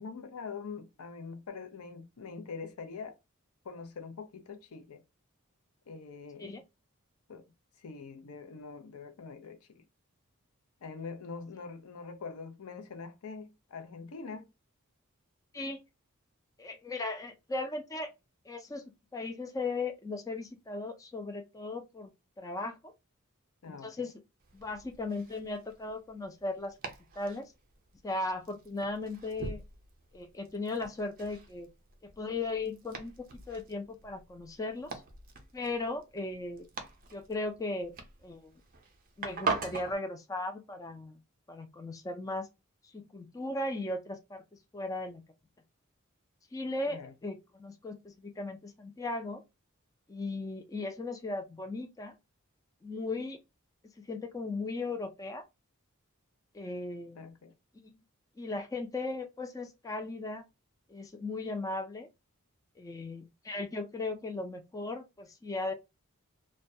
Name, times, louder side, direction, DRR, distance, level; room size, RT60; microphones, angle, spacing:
voice 1, 0.0-3.1 3.6-5.0 5.9-6.6 7.3-7.5 7.8-9.8 10.8-14.5 23.6-24.1 46.9-47.1 57.2-57.5, left 5 dB, 90° left, 0.5 m, -44 dB
voice 2, 16.6-18.1 18.5-18.8 19.1-22.1 22.4-22.9 23.7-24.1 24.5-26.7 27.2-27.5 28.0-29.6 30.1-31.7 32.0-33.1 33.5-35.0 35.5-36.7 37.1-37.9 38.2-38.5 39.2-41.2 41.5-42.5 42.9-44.4 44.7-45.2 46.5-49.4 50.1-52.1 52.8-53.4 54.1-55.4 56.5-57.2 57.8-58.0 58.4-60.4 60.9-62.1 62.8-65.7, left 2 dB, 15° left, 0.3 m, -37 dB
Domestic sounds home sounds, 24.4-39.9, right 4 dB, 40° right, 0.5 m, -43 dB
2.2 x 2.2 x 2.6 m
head